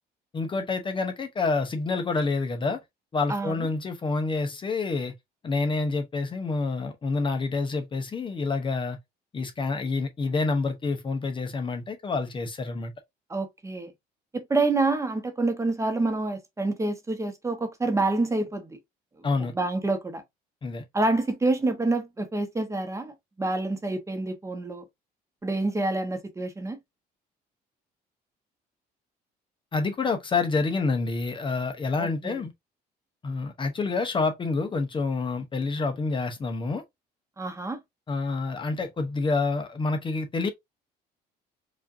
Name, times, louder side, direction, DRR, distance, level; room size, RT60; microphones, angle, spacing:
voice 1, 0.3-2.8 3.1-5.1 5.4-9.0 9.3-12.9 19.2-19.5 20.6-20.8 29.7-32.5 33.2-36.8 38.1-40.5, left 3 dB, 30° left, 0.7 m, -28 dB
voice 2, 13.3-13.9 14.3-18.7 19.5-20.2 20.9-24.8 25.4-26.8 32.0-32.4 37.4-37.8, right 2 dB, 15° right, 1.0 m, -27 dB
4.9 x 2.5 x 2.6 m
cardioid pair, 110°, 17 cm